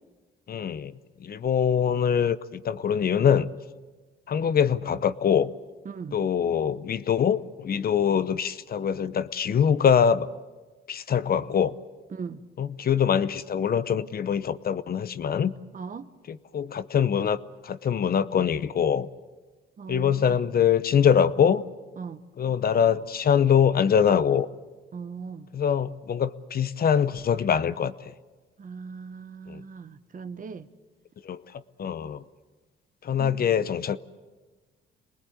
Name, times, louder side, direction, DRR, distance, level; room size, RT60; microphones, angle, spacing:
voice 1, 0.5-0.9 1.2-3.5 4.3-5.5 6.1-10.3 10.9-11.8 12.6-15.5 16.3-17.4 17.6-19.1 19.9-21.6 22.4-24.5 25.5-28.1 29.5-29.6 31.2-32.2 33.0-34.0, left 8 dB, 50° left, 0.9 m, -23 dB
voice 2, 5.8-6.2 12.1-12.4 15.7-16.1 19.8-20.4 22.0-22.2 24.9-25.5 28.6-30.7 33.2-33.4, right 5 dB, 45° right, 1.2 m, -39 dB
27.0 x 20.0 x 8.1 m
cardioid pair, 90°, 20 cm